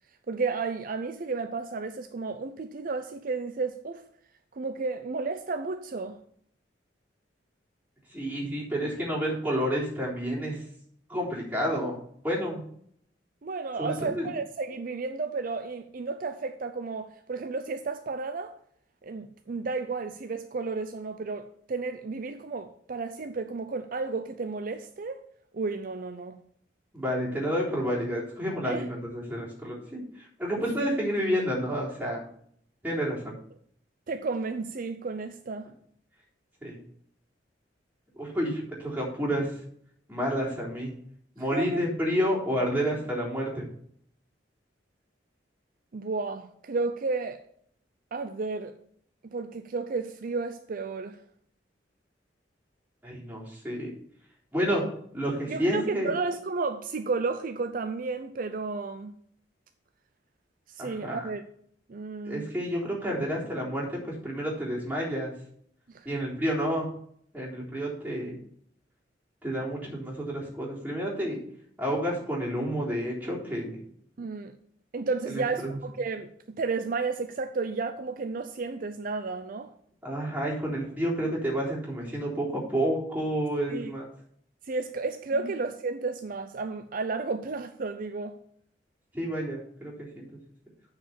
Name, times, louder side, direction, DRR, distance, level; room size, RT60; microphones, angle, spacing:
voice 1, 0.3-4.0 4.5-6.2 13.4-18.6 19.0-25.2 25.5-26.4 28.6-28.9 30.8-30.9 34.1-35.7 41.5-41.8 45.9-47.4 48.1-48.8 49.2-51.2 55.5-59.2 60.7-61.4 61.9-62.5 65.9-66.1 74.2-74.5 74.9-79.7 83.7-83.9 84.6-88.4, right 4 dB, 50° right, 0.5 m, -32 dB
voice 2, 8.1-10.6 11.1-12.0 12.2-12.6 13.8-14.3 26.9-32.2 32.8-33.3 36.6-36.8 38.2-39.6 40.1-40.9 41.4-43.6 53.0-53.9 54.5-54.8 55.1-56.1 60.8-61.2 62.3-65.3 66.0-66.9 67.3-68.4 69.4-71.4 71.8-73.8 75.3-75.8 80.0-84.1 85.3-85.5 89.1-90.4, equal, 10° right, 3.7 m, -30 dB
9.1 x 4.9 x 7.0 m
head